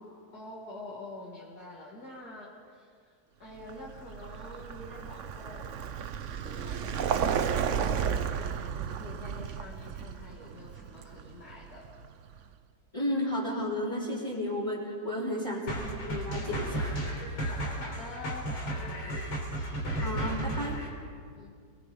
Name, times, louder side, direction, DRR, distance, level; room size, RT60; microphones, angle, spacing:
voice 1, 0.3-5.9 6.4-11.9 15.1-15.5 17.4-19.2 21.4-21.6, left 2 dB, 50° left, -5 dB, 3.1 m, -46 dB
Vehicle, 3.6-12.4, right 7 dB, 60° right, 0.8 m, -33 dB
voice 2, 12.9-15.8 16.0-16.9 20.0-20.7, left 1 dB, 15° left, -8 dB, 3.7 m, -32 dB
sound 1, 15.7-20.9, right 1 dB, 85° left, 4.7 m, -33 dB
29.5 x 20.0 x 5.4 m, 2.1 s
omnidirectional pair, 2.1 m